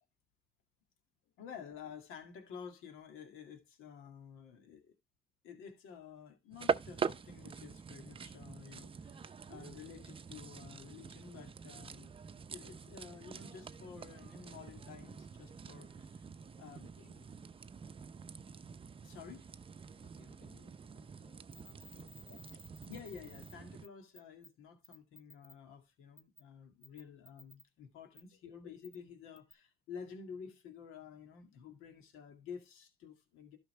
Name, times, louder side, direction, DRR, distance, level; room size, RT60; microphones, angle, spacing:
voice 1, 1.4-4.9 5.4-12.1 12.5-16.3 16.6-17.1 19.0-19.5 22.3-22.4 22.9-33.6, left 6 dB, 85° left, 2.1 m, -51 dB
sound 1, 6.5-23.9, right 6 dB, 25° right, 0.6 m, -44 dB
voice 2, 16.6-17.3 19.9-22.6 28.3-28.4, left 7 dB, 65° left, 1.4 m, -67 dB
sound 2, 21.5-23.5 23.8-23.9 24.1-24.5 24.8-25.5 26.2-26.4 26.8-27.6 28.2-28.3 28.8-29.0 29.4-29.5, left 2 dB, 10° right, 1.1 m, -56 dB
12.0 x 5.7 x 3.2 m
cardioid pair, 95°, 20 cm